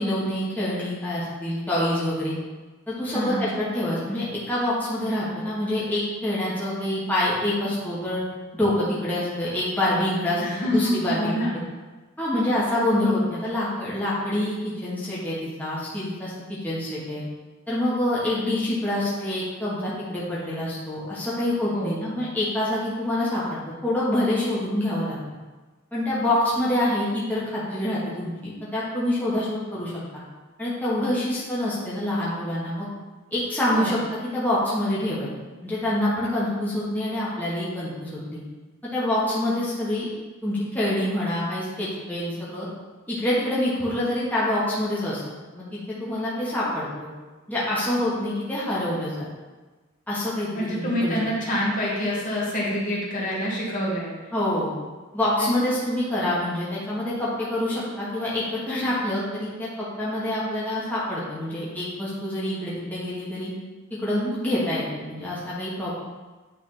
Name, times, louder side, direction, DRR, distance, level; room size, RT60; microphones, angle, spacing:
voice 1, 0.0-2.3 2.9-8.2 8.5-11.3 12.2-17.2 17.7-25.2 25.9-29.9 30.6-32.9 33.3-34.0 34.3-35.3 35.6-38.4 38.9-40.1 40.4-42.7 43.1-45.2 45.5-47.1 47.5-49.2 50.1-51.2 51.5-51.6 54.3-54.7 55.1-63.5 64.0-65.9, left 1 dB, 10° left, -8 dB, 1.5 m, -26 dB
voice 2, 3.1-3.5 10.4-11.6 21.7-22.1 33.7-33.9 50.5-54.1 55.4-55.6, equal, 40° left, -5 dB, 1.7 m, -27 dB
9.3 x 3.7 x 3.9 m, 1.3 s
head